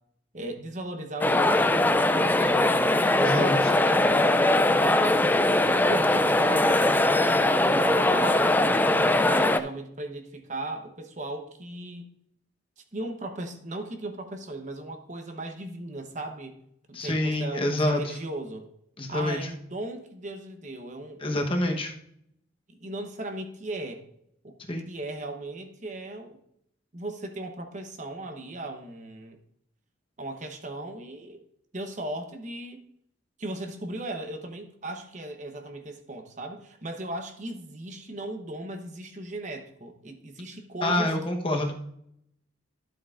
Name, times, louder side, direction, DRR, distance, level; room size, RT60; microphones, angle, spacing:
voice 1, 0.3-5.3 5.9-12.1 12.8-16.6 16.9-18.7 19.1-21.3 22.7-24.0 24.4-24.5 24.9-26.4 26.9-29.4 30.2-31.4 31.7-32.8 33.4-41.1, right 2 dB, 40° right, 5 dB, 1.0 m, -37 dB
sound 1, 1.2-9.6, left 1 dB, 10° left, 0.3 m, -21 dB
voice 2, 3.2-3.5 16.9-18.2 19.0-19.5 21.2-21.9 24.7-24.9 40.8-41.7, left 1 dB, 30° left, 2 dB, 1.0 m, -27 dB
12.5 x 7.8 x 2.5 m, 0.72 s
head